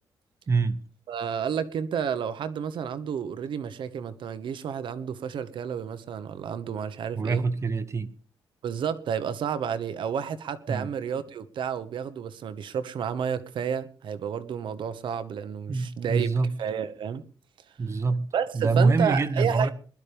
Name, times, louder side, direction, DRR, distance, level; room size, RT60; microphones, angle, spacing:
voice 1, 0.5-0.8 7.2-8.1 10.7-10.9 15.7-16.5 17.8-18.3 18.5-19.7, right 4 dB, 35° right, 1.1 m, -25 dB
voice 2, 1.1-7.4 8.6-16.3 16.6-17.2 18.3-19.7, right 7 dB, 70° right, 1.1 m, -31 dB
21.5 x 12.0 x 3.5 m
cardioid pair, 135°, 9 cm